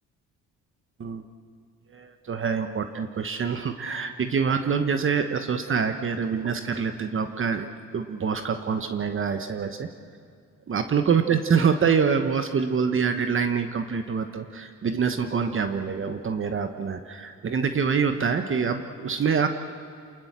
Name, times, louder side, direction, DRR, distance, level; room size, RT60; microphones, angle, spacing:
voice 1, 1.9-7.7 7.9-9.9 10.7-19.5, right 6 dB, 45° right, 8 dB, 1.2 m, -25 dB
28.0 x 20.0 x 7.5 m, 2.2 s
cardioid pair, 90°, 30 cm